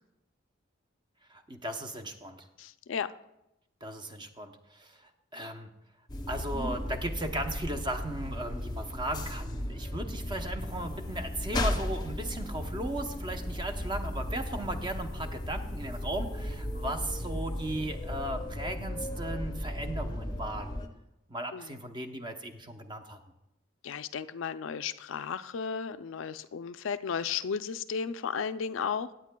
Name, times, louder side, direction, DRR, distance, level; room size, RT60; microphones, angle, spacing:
voice 1, 1.3-2.4 3.8-5.7 6.3-20.8 21.3-23.2, right 1 dB, 25° right, 6 dB, 0.7 m, -37 dB
voice 2, 2.6-3.1 21.5-21.7 23.8-29.1, left 6 dB, 85° left, 12 dB, 0.4 m, -34 dB
sound 1, 6.1-20.9, left 1 dB, 20° left, 0.6 m, -35 dB
16.5 x 9.2 x 2.2 m, 0.88 s
head